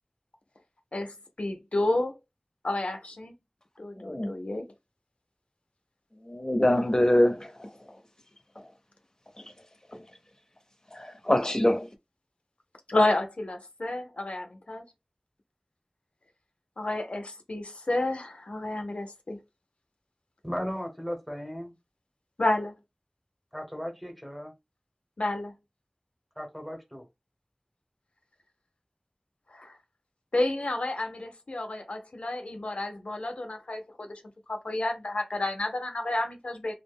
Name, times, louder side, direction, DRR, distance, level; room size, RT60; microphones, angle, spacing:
voice 1, 0.9-2.1 2.6-3.3 3.8-4.7 12.9-14.8 16.8-19.4 22.4-22.7 25.2-25.5 29.5-29.7 30.3-34.1 34.5-36.7, left 2 dB, 80° left, 0.4 m, -30 dB
voice 2, 4.0-4.3 6.3-7.7 10.9-11.9, left 1 dB, 35° left, 0.6 m, -24 dB
voice 3, 20.4-21.7 23.5-24.5 26.4-27.0, equal, 5° right, 0.9 m, -36 dB
2.4 x 2.0 x 3.5 m
wide cardioid pair, 40°, 2 cm